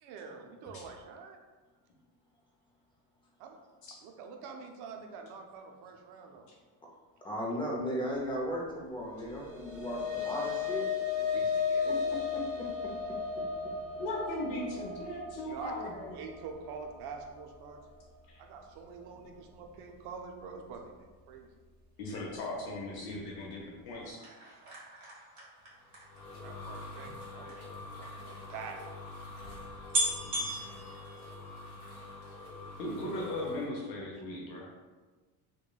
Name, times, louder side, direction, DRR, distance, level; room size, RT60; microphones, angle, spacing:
voice 1, 0.0-1.4 3.4-3.6 4.0-6.5 11.2-12.0 15.4-15.7 16.1-17.8 18.4-20.8 21.3-21.5 26.4-28.8, right 5 dB, 65° right, 3 dB, 0.6 m, -46 dB
voice 2, 7.2-10.9 11.3-11.4 11.8-12.7, equal, 10° left, -3 dB, 0.5 m, -36 dB
sound 1, 9.2-17.8, left 6 dB, 25° right, 0.9 m, -35 dB
voice 3, 14.0-16.2 18.3-18.4 22.0-24.2 30.2-30.5 32.8-34.6, left 1 dB, 60° left, -3 dB, 0.7 m, -38 dB
sound 2, 24.0-27.6 28.4-28.5 28.7-28.8 29.4-29.5 29.9-31.8 32.2-32.6 32.9-33.0, right 1 dB, 45° right, 1.2 m, -37 dB
sound 3, 25.7-33.7, left 2 dB, 35° left, 0.9 m, -46 dB
3.0 x 2.3 x 2.2 m, 1.3 s
supercardioid pair, 110°, 40 cm